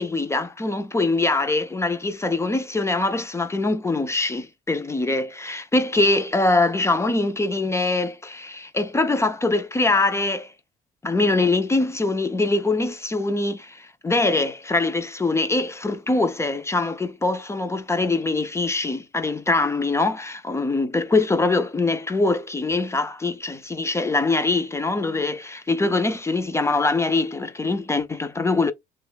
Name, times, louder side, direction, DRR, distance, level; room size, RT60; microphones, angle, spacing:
voice 1, 0.0-10.5 11.0-28.7, left 3 dB, 15° left, 0.4 m, -23 dB
3.1 x 2.2 x 3.3 m
cardioid pair, 110°, 17 cm